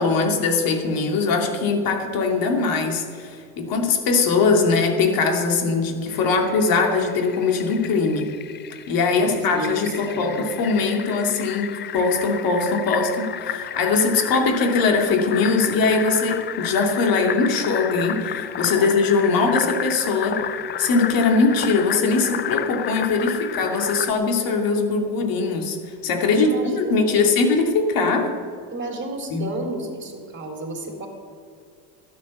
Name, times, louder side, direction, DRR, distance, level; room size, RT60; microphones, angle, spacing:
voice 1, 0.0-8.3 8.9-20.4 20.8-25.8 26.0-28.3 29.3-29.5, left 4 dB, 50° left, 2 dB, 2.7 m, -21 dB
Fill (with liquid), 6.1-24.1, left 10 dB, 25° left, 0.5 m, -32 dB
voice 2, 9.1-10.5 18.7-18.9 26.4-27.2 28.7-31.1, right 2 dB, 25° right, 2 dB, 3.6 m, -32 dB
12.5 x 9.6 x 7.1 m, 2.3 s
supercardioid pair, 100°, 43 cm